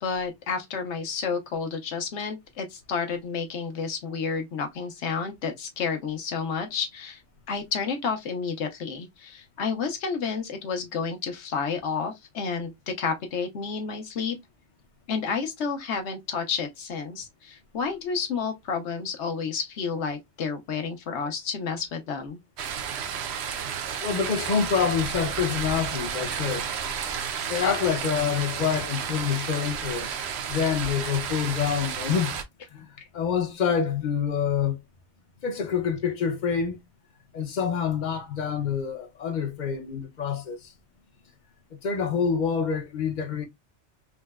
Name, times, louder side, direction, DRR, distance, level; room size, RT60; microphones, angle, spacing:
voice 1, 0.0-7.2 7.5-14.4 15.1-22.4, left 5 dB, 70° left, 1.1 m, -30 dB
sound 1, 22.6-32.4, right 7 dB, 70° right, 0.8 m, -32 dB
voice 2, 24.0-26.7 27.5-30.2 30.5-32.3 32.7-32.9 33.1-34.8 35.4-36.8 37.3-40.7 41.8-43.4, left 7 dB, 50° left, 0.6 m, -26 dB
3.8 x 2.1 x 2.3 m
omnidirectional pair, 1.2 m